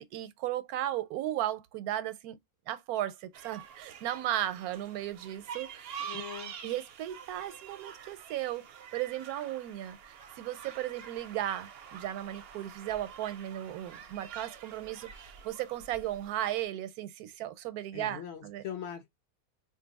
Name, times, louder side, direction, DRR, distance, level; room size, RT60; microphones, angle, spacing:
voice 1, 0.0-2.4 2.7-6.2 6.6-18.6, right 13 dB, 85° right, 1.1 m, -36 dB
sound 1, 3.3-16.6, right 8 dB, 60° right, 0.6 m, -47 dB
voice 2, 6.0-6.5 17.9-19.1, left 9 dB, 65° left, 0.7 m, -41 dB
2.6 x 2.5 x 3.9 m
omnidirectional pair, 1.6 m